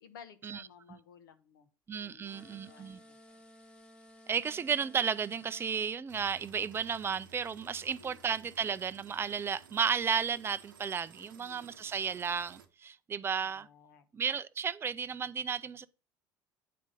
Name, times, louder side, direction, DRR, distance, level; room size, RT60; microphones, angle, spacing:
voice 1, 0.0-1.7 2.0-3.4 7.8-8.2 11.2-11.7 13.4-14.1, left 7 dB, 80° left, 0.9 m, -57 dB
voice 2, 1.9-3.0 4.3-13.7 14.1-15.9, right 7 dB, 20° right, 0.4 m, -33 dB
sound 1, 2.2-5.9, equal, 10° left, 1.0 m, -56 dB
sound 2, 6.1-12.7, right 6 dB, 85° right, 0.7 m, -57 dB
8.4 x 3.6 x 5.4 m
hypercardioid pair, 75°, 11 cm